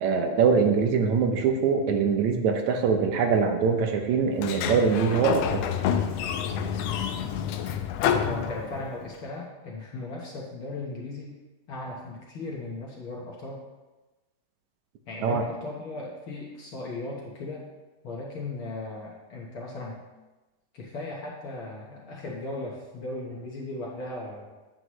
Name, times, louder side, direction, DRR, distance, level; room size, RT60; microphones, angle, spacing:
voice 1, 0.0-5.7 15.2-15.4, right 5 dB, 75° right, 5 dB, 2.1 m, -23 dB
Sliding door, 4.4-9.1, left 8 dB, 85° left, 1.4 m, -28 dB
voice 2, 8.3-11.4 11.7-13.6 15.1-17.7 18.0-20.0 20.7-24.5, left 2 dB, 55° left, -3 dB, 1.7 m, -37 dB
9.5 x 7.8 x 3.1 m, 1.1 s
omnidirectional pair, 3.4 m